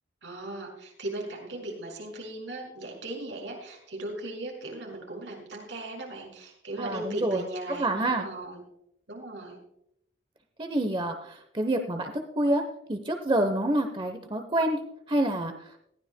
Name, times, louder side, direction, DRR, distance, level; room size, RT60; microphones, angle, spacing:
voice 1, 0.2-8.6 9.1-9.6, right 2 dB, 85° right, 0 dB, 5.7 m, -37 dB
voice 2, 6.8-7.4 7.8-8.3 10.6-12.6 12.9-15.8, right 1 dB, 25° right, 6 dB, 0.9 m, -28 dB
20.0 x 15.0 x 2.2 m, 0.75 s
head